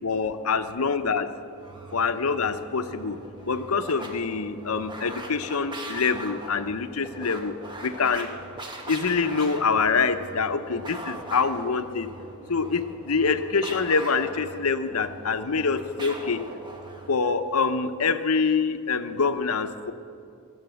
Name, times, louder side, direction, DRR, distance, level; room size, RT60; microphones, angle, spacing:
voice 1, 0.0-1.3 1.9-3.2 3.4-7.5 7.8-8.3 8.9-12.1 12.5-16.4 17.1-19.9, left 5 dB, 85° left, 10 dB, 0.8 m, -25 dB
sound 1, 1.5-17.2, right 1 dB, 20° right, 1.4 m, -41 dB
20.0 x 7.3 x 7.9 m, 2.5 s
head